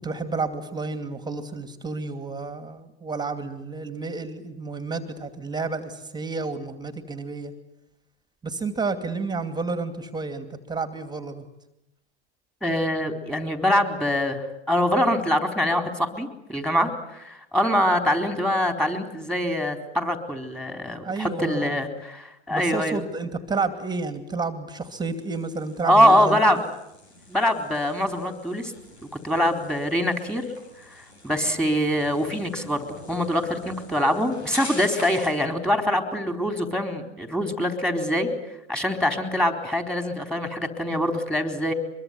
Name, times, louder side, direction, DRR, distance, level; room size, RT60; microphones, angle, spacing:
voice 1, 0.0-7.5 8.4-11.5 21.0-21.8 22.5-26.6, right 4 dB, 15° right, 9 dB, 2.5 m, -31 dB
voice 2, 12.6-23.0 25.8-26.6 27.3-28.7 29.2-30.4 30.9-32.8 33.1-38.3 38.7-41.7, equal, ahead, 7 dB, 4.1 m, -24 dB
sound 1, 24.7-35.5, left 2 dB, 85° left, 7.9 m, -44 dB
23.5 x 23.0 x 9.4 m, 0.83 s
hypercardioid pair, 105°, 32 cm